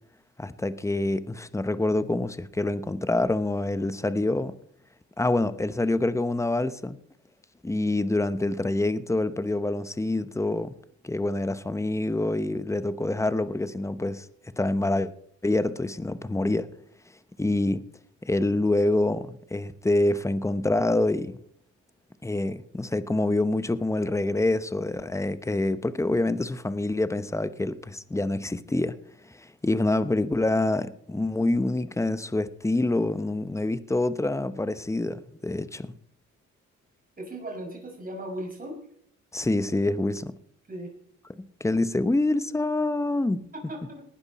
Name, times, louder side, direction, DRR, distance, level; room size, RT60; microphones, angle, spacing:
voice 1, 0.4-4.5 5.2-7.0 7.6-10.7 11.0-14.3 14.6-15.1 15.4-16.7 17.4-17.8 18.2-21.3 22.2-28.9 29.3-35.9 39.3-40.3 41.6-43.4, left 2 dB, 10° left, 0.9 m, -26 dB
voice 2, 37.2-38.8 40.7-40.9 43.5-44.0, right 1 dB, 30° right, 6.0 m, -37 dB
19.0 x 11.5 x 4.2 m
cardioid pair, 90°, 30 cm